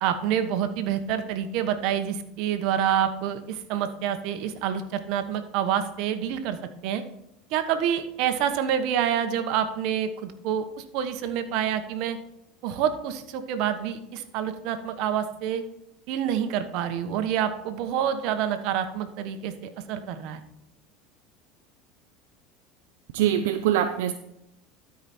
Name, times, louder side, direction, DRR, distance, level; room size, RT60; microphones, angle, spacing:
voice 1, 0.0-6.6 6.8-7.0 7.5-12.2 12.6-15.6 16.1-20.4, right 9 dB, 65° right, 1.1 m, -27 dB
voice 2, 23.1-24.1, right 10 dB, 80° right, 0.5 m, -23 dB
12.5 x 5.0 x 4.3 m
supercardioid pair, 115°, 0 cm